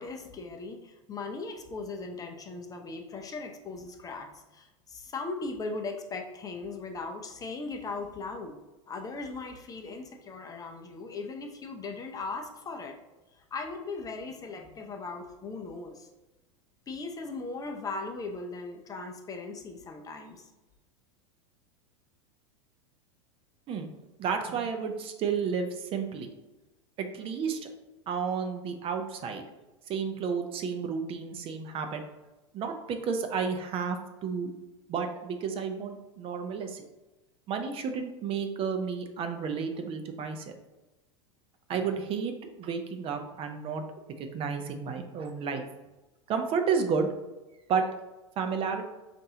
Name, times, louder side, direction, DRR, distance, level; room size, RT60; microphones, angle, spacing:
voice 1, 0.0-8.6 8.9-13.0 13.3-16.1 16.9-20.5, left 3 dB, 20° left, 4 dB, 0.5 m, -38 dB
voice 2, 24.2-26.3 27.0-27.6 28.1-29.4 29.9-32.0 32.5-34.5 34.9-36.8 37.5-40.5 41.7-42.3 42.6-43.8 44.2-45.6 46.3-47.1 47.7-47.8 48.4-48.8, right 6 dB, 35° right, 6 dB, 0.5 m, -31 dB
5.2 x 2.5 x 2.8 m, 1.1 s
hypercardioid pair, 100°, 16 cm